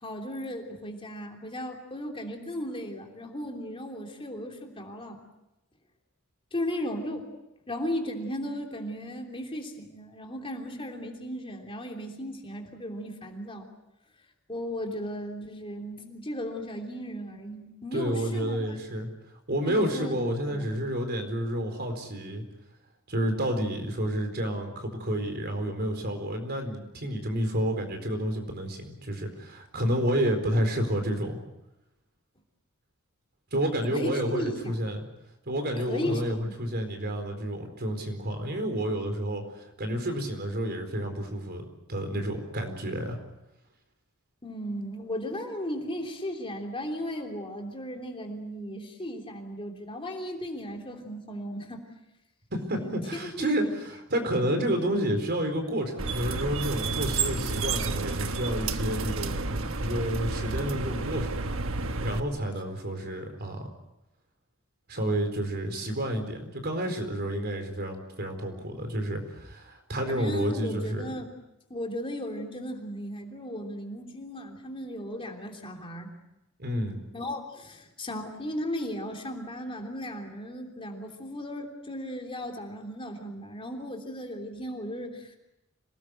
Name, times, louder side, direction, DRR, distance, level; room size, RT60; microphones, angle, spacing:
voice 1, 0.0-5.2 6.5-7.3 7.7-13.7 14.5-18.8 19.6-20.6 33.8-34.8 35.8-36.5 44.4-51.8 52.8-52.9 53.2-53.7 70.1-71.3 71.7-76.1 77.1-85.3, equal, 25° left, 2 dB, 3.2 m, -36 dB
voice 2, 17.9-19.1 19.5-22.4 23.1-31.4 33.5-35.1 35.5-43.2 52.5-61.4 62.0-63.7 64.9-71.1 76.6-77.0, equal, 50° right, 5 dB, 4.3 m, -30 dB
sound 1, 56.0-62.2, right 3 dB, 70° right, 1.3 m, -31 dB
26.5 x 19.0 x 7.8 m, 0.93 s
head